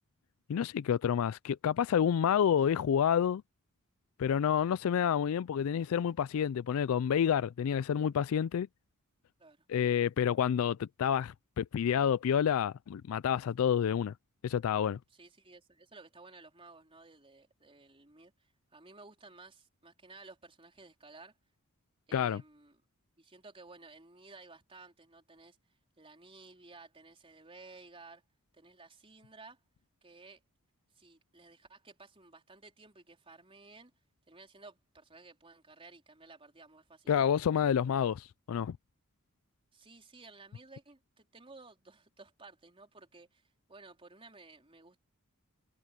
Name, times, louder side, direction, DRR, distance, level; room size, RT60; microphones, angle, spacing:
voice 1, 0.5-3.4 4.2-8.7 9.7-14.1 14.4-15.0 22.1-22.4 37.1-38.8, left 8 dB, 70° left, 0.3 m, -29 dB
voice 2, 15.1-21.4 22.1-22.8 23.2-28.2 28.5-29.6 30.0-30.4 30.9-33.9 34.3-37.1 37.8-38.0 39.7-45.0, right 3 dB, 25° right, 4.1 m, -55 dB
head